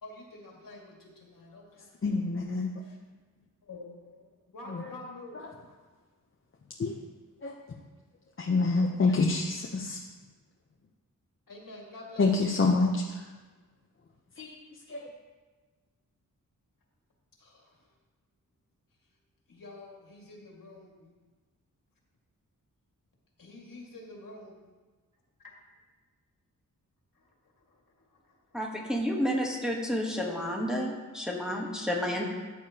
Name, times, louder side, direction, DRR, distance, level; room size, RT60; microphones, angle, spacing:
voice 1, 0.0-1.9 2.8-3.0 3.6-5.5 11.5-12.6 17.4-17.9 19.5-21.2 23.4-24.7 25.4-25.5 27.1-28.6, left 2 dB, 75° left, -1 dB, 2.1 m, -48 dB
voice 2, 2.0-2.7 4.7-4.8 6.8-6.9 7.4-7.6 8.4-10.0 12.2-13.3 14.4-14.6 14.9-15.1, left 3 dB, 40° left, -1 dB, 0.7 m, -27 dB
voice 3, 28.5-32.2, equal, ahead, -2 dB, 1.2 m, -30 dB
13.5 x 8.5 x 2.9 m, 1.3 s
wide cardioid pair, 160°, 34 cm